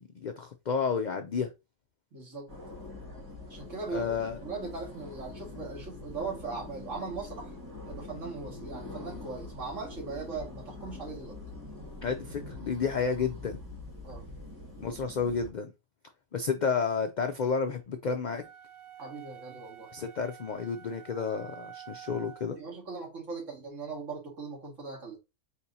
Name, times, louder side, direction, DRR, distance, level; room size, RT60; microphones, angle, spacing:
voice 1, 0.0-1.5 3.9-4.4 12.0-13.6 14.8-15.7 16.3-18.4 19.9-22.6, left 5 dB, 85° left, 0.4 m, -31 dB
voice 2, 2.1-2.5 3.5-4.1 4.4-7.5 7.9-11.4 14.0-14.2 19.0-19.9 22.5-25.2, right 4 dB, 65° right, 2.4 m, -39 dB
sound 1, 2.5-15.5, left 2 dB, 15° right, 1.7 m, -44 dB
sound 2, 18.3-22.6, right 10 dB, 80° right, 0.4 m, -49 dB
4.4 x 4.2 x 2.7 m
omnidirectional pair, 1.4 m